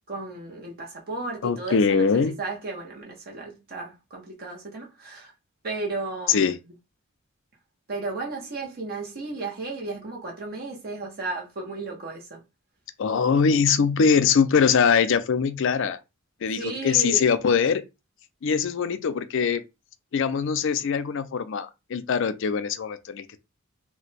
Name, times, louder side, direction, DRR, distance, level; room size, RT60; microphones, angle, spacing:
voice 1, 0.1-5.3 5.6-6.5 7.9-12.4 16.6-17.2, right 3 dB, 50° right, 0.9 m, -34 dB
voice 2, 1.4-2.3 6.3-6.6 13.0-16.0 16.4-17.8 18.4-19.6 20.1-23.4, left 6 dB, 60° left, 0.4 m, -22 dB
2.5 x 2.2 x 4.0 m
head